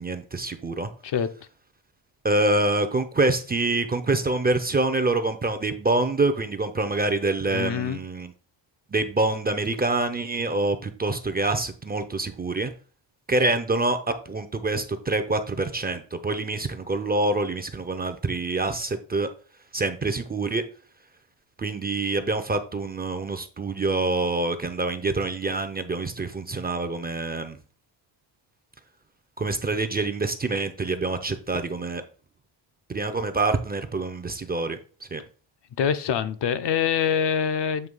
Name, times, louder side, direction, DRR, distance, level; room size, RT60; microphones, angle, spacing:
voice 1, 0.0-0.9 2.2-8.3 8.9-12.7 13.3-19.3 19.7-20.6 21.6-27.6 29.4-32.0 32.9-34.8 35.1-35.2, right 2 dB, 20° right, 0.6 m, -26 dB
voice 2, 1.0-1.3 7.5-8.0 35.8-37.9, left 8 dB, 55° left, 0.8 m, -25 dB
8.0 x 2.8 x 5.3 m
cardioid pair, 110°, 49 cm